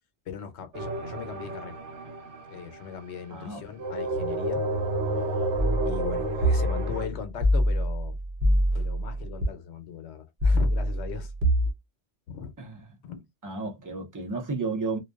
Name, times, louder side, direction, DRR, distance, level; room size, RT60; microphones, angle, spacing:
voice 1, 0.3-1.8 2.5-4.6 5.0-5.3 5.8-8.2 8.7-11.3 12.3-12.5 13.0-13.2, left 7 dB, 75° left, 0.9 m, -39 dB
sound 1, 0.7-3.2 3.8-7.1, right 2 dB, 85° right, 0.9 m, -31 dB
voice 2, 3.3-3.6 12.6-12.8 13.1-13.2 13.4-15.0, right 3 dB, 25° right, 0.5 m, -32 dB
sound 2, 5.6-9.5 10.4-11.7, equal, 55° right, 0.8 m, -25 dB
2.5 x 2.2 x 2.3 m
omnidirectional pair, 1.2 m